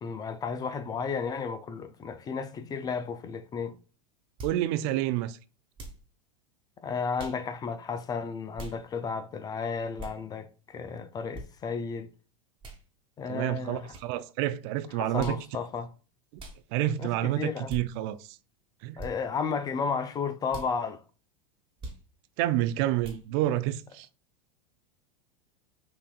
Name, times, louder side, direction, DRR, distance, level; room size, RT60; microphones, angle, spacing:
voice 1, 0.0-3.8 6.8-12.1 13.2-13.9 15.0-15.9 17.0-17.7 19.0-21.0, left 5 dB, 20° left, 0.4 m, -33 dB
sound 1, 4.4-4.6 5.8-6.1 7.2-7.4 8.6-8.8 10.0-10.2 11.3-11.5 12.6-12.8 13.9-14.1 15.2-15.4 16.4-16.6 17.7-17.8 19.0-19.1 20.5-20.7 21.8-22.0 23.0-23.2, right 2 dB, 30° right, 1.2 m, -41 dB
voice 2, 4.4-5.4 13.3-15.4 16.7-18.4 18.8-19.0 22.4-24.1, right 14 dB, 45° right, 0.4 m, -29 dB
5.7 x 2.5 x 2.3 m
hypercardioid pair, 90°, 18 cm